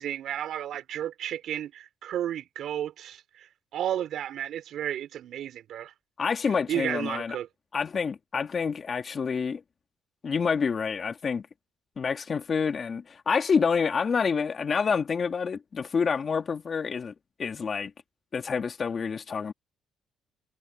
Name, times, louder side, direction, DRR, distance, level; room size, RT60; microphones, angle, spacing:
voice 1, 0.0-5.9 6.5-7.5, right 11 dB, 70° right, 5.7 m, -33 dB
voice 2, 6.2-7.4 7.7-9.6 10.2-11.5 12.0-17.1 17.4-17.9 18.3-19.5, left 5 dB, 40° left, 2.5 m, -28 dB
cardioid pair, 100°, 0 cm